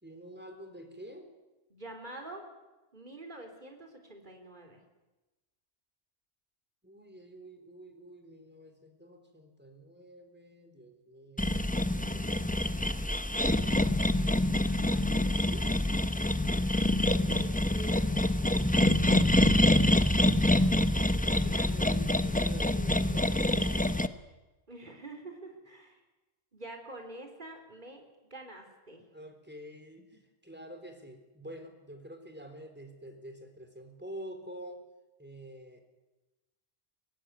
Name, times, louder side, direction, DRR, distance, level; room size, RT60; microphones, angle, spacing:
voice 1, 0.0-1.3 6.8-12.7 14.9-15.7 21.1-24.0 29.1-34.8 35.2-35.8, equal, 10° right, 5 dB, 3.9 m, -48 dB
voice 2, 1.7-2.4 2.9-4.8 17.2-18.3 21.4-21.7 24.7-26.0 26.5-29.0, right 1 dB, 45° right, 4 dB, 4.0 m, -46 dB
sound 1, 11.4-24.1, left 1 dB, 10° left, 0.8 m, -26 dB
24.0 x 18.5 x 9.6 m, 1.1 s
omnidirectional pair, 1.2 m